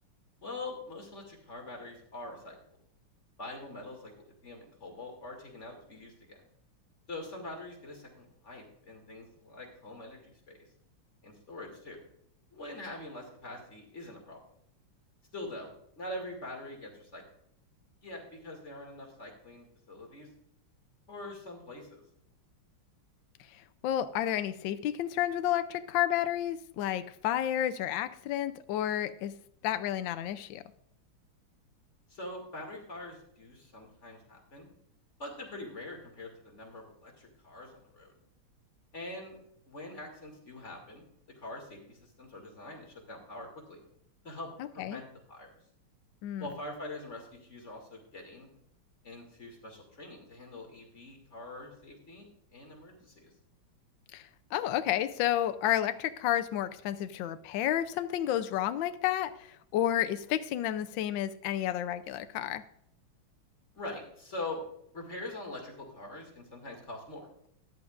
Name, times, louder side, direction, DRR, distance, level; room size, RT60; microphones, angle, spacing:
voice 1, 0.4-2.6 3.4-6.4 7.1-10.6 11.2-12.0 12.5-14.4 15.3-17.2 18.0-20.3 21.1-22.0 32.1-34.7 35.2-38.1 38.9-39.4 39.7-41.0 41.4-43.8 44.2-44.5 44.7-45.5 46.4-48.5 49.0-53.3 63.7-64.6 64.9-67.3, left 2 dB, 35° left, 0 dB, 2.6 m, -44 dB
voice 2, 23.5-29.3 29.6-30.6 44.6-45.0 46.2-46.5 54.1-62.6, left 12 dB, 70° left, 10 dB, 1.3 m, -31 dB
14.0 x 11.0 x 2.5 m, 0.70 s
omnidirectional pair, 2.4 m